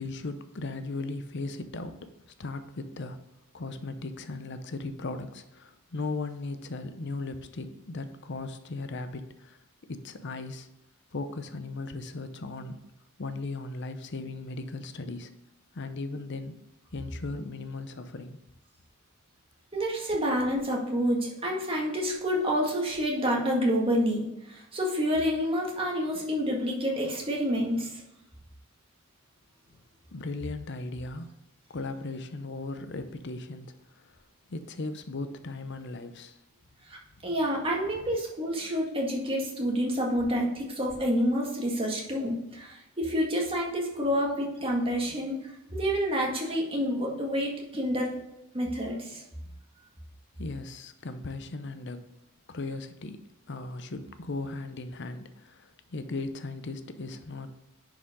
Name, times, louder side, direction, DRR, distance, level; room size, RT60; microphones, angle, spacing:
voice 1, 0.0-1.9 2.4-3.2 3.5-9.6 9.9-10.7 11.1-12.8 13.2-15.3 15.7-16.6 16.9-18.4 30.1-31.3 31.7-34.2 34.5-36.4 50.4-52.0 52.5-57.5, left 3 dB, 55° left, 10 dB, 0.7 m, -37 dB
voice 2, 19.7-28.0 36.9-37.0 37.2-45.3 45.7-48.1 48.5-49.2, equal, 25° right, -1 dB, 1.8 m, -28 dB
10.0 x 5.0 x 3.7 m, 0.90 s
head